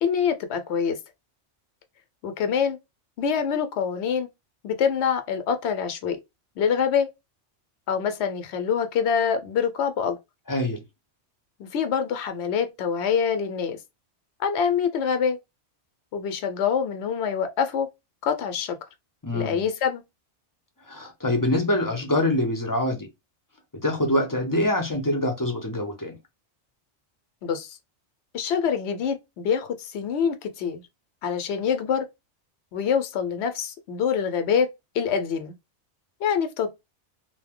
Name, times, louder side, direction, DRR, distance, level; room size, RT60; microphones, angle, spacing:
voice 1, 0.0-1.0 2.2-2.8 3.2-4.3 4.6-6.2 6.6-7.1 7.9-10.2 11.6-13.8 14.4-15.4 16.1-17.9 18.2-18.8 19.3-20.0 27.4-27.8 28.3-30.8 31.2-32.1 32.7-34.7 34.9-35.5 36.2-36.7, left 7 dB, 70° left, 0.8 m, -25 dB
voice 2, 10.5-10.8 19.2-19.6 20.9-23.1 23.8-26.2, left 1 dB, 25° left, 0.5 m, -25 dB
2.6 x 2.1 x 3.5 m
omnidirectional pair, 1.2 m